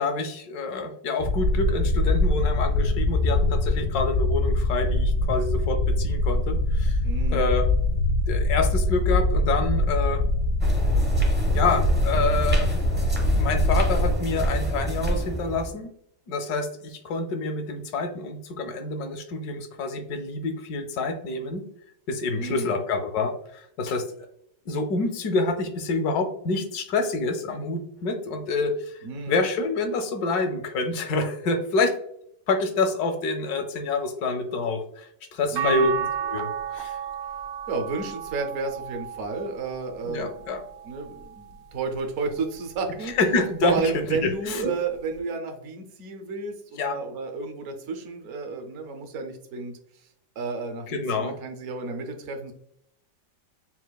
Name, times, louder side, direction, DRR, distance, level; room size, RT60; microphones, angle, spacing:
voice 1, 0.0-7.0 7.3-7.7 8.3-10.2 11.5-12.7 13.3-15.9 16.3-21.6 22.1-24.1 24.7-29.0 29.3-32.0 32.5-37.0 40.0-40.6 43.2-43.8 44.1-44.7 46.8-47.0 50.9-51.4, left 3 dB, 70° left, 6 dB, 1.0 m, -27 dB
sound 1, 1.2-14.2, left 2 dB, 90° left, 1.5 m, -23 dB
voice 2, 7.0-7.5 22.3-22.8 29.0-29.4 35.5-35.9 37.7-40.3 40.8-43.1 43.6-50.1 50.4-52.5, right 4 dB, 65° right, 5 dB, 0.7 m, -32 dB
sound 2, 10.6-15.7, right 2 dB, 15° right, 0.3 m, -27 dB
sound 3, 35.6-41.9 42.4-43.8 45.2-45.3, right 8 dB, 80° right, 1.2 m, -34 dB
7.2 x 2.4 x 2.3 m, 0.73 s
omnidirectional pair, 2.0 m